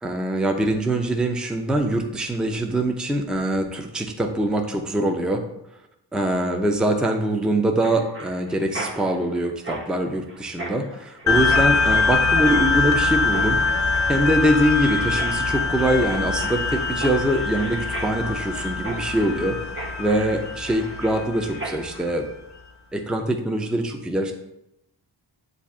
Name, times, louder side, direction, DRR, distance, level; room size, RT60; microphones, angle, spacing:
voice 1, 0.0-5.4 6.1-13.6 14.1-22.3 22.9-24.3, right 1 dB, ahead, 3 dB, 0.5 m, -23 dB
Mechanisms, 7.8-22.0, right 2 dB, 25° right, 0.9 m, -38 dB
sound 1, 11.3-22.1, left 3 dB, 35° left, 0.7 m, -23 dB
7.1 x 2.6 x 2.4 m, 0.83 s
cardioid pair, 45°, 47 cm